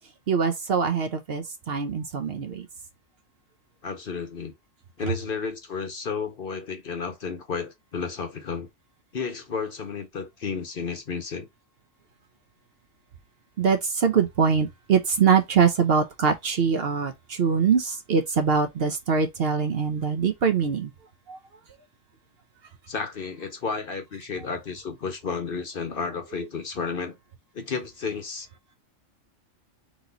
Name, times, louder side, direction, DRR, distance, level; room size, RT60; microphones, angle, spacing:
voice 1, 0.3-2.7 13.6-20.9 21.3-21.4, right 6 dB, 55° right, 0.8 m, -23 dB
voice 2, 3.8-4.5 5.0-8.7 9.1-11.5 22.9-27.2 27.5-28.5, left 5 dB, 50° left, 0.9 m, -32 dB
4.2 x 3.0 x 3.9 m
omnidirectional pair, 1.4 m